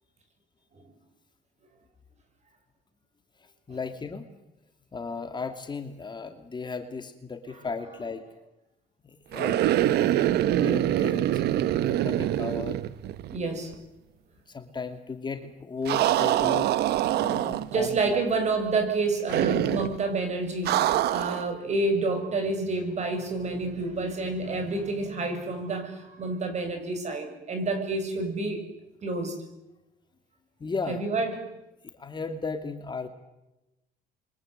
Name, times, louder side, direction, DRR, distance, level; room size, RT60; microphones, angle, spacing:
voice 1, 3.7-4.3 4.9-8.3 9.0-12.8 14.5-16.7 17.2-18.2 30.6-31.0 31.9-33.1, left 4 dB, 25° left, 7 dB, 2.6 m, -35 dB
sound 1, 9.3-13.5 13.7-13.8 15.9-17.9 19.3-20.0 20.7-21.5, right 13 dB, 75° right, 1.2 m, -25 dB
voice 2, 13.3-13.8 17.7-28.7 29.0-29.4 30.9-31.5, right 3 dB, 40° right, 6 dB, 7.4 m, -29 dB
28.5 x 24.0 x 8.2 m, 0.96 s
cardioid pair, 110°, 17 cm